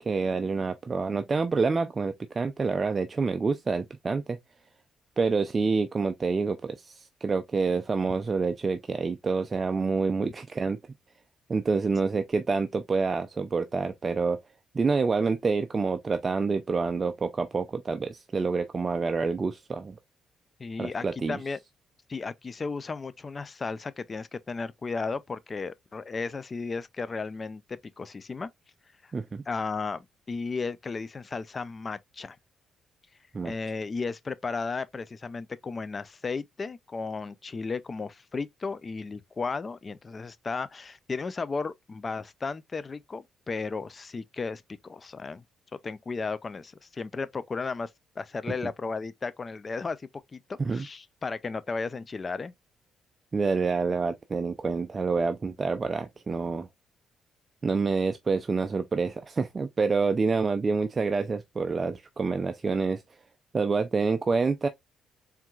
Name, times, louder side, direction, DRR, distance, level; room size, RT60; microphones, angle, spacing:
voice 1, 0.0-4.4 5.2-10.8 11.5-14.4 14.7-20.0 20.8-21.4 29.1-29.4 33.3-33.5 50.6-50.8 53.3-56.7 57.6-63.2 63.5-64.7, right 4 dB, 30° right, 0.5 m, -27 dB
voice 2, 20.6-21.6 22.1-28.5 29.0-29.1 29.5-32.4 33.4-45.4 45.8-47.9 48.2-52.5, left 4 dB, 35° left, 0.4 m, -34 dB
4.6 x 3.5 x 2.3 m
cardioid pair, 90°, 0 cm